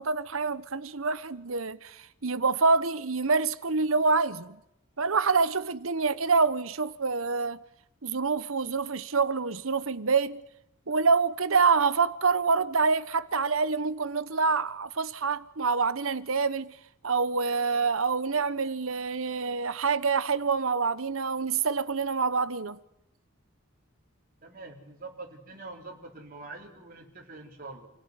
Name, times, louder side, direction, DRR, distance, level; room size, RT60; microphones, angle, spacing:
voice 1, 0.0-4.6 5.0-7.6 8.0-10.4 10.9-16.7 17.0-22.8, right 4 dB, 75° right, 1.1 m, -26 dB
voice 2, 24.4-27.9, right 3 dB, 40° right, 4.4 m, -44 dB
29.0 x 17.0 x 9.6 m
head